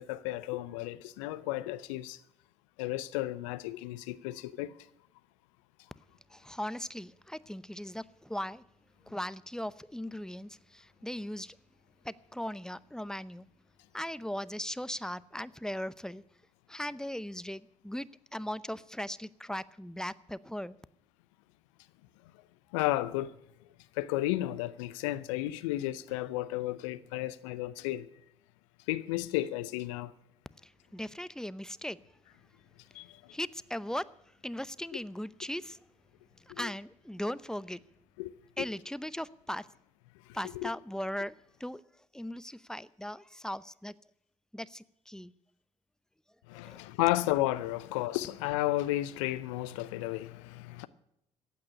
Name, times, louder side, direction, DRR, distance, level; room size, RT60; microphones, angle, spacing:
voice 1, 0.0-2.2 2.8-4.7 22.7-23.3 24.0-28.1 28.9-30.1 32.9-33.2 36.5-36.7 38.2-38.3 38.6-38.7 40.6-40.7 46.5-50.9, left 16 dB, 80° left, 0.5 m, -33 dB
voice 2, 6.3-8.6 9.1-11.6 12.0-13.5 13.9-16.2 16.7-20.8 30.6-32.0 33.3-34.1 34.4-35.8 36.4-37.8 38.6-39.7 40.3-41.8 42.1-43.9 44.5-45.3 46.6-46.8, left 1 dB, 5° left, 0.7 m, -38 dB
15.0 x 8.6 x 9.8 m
hypercardioid pair, 40°, 16 cm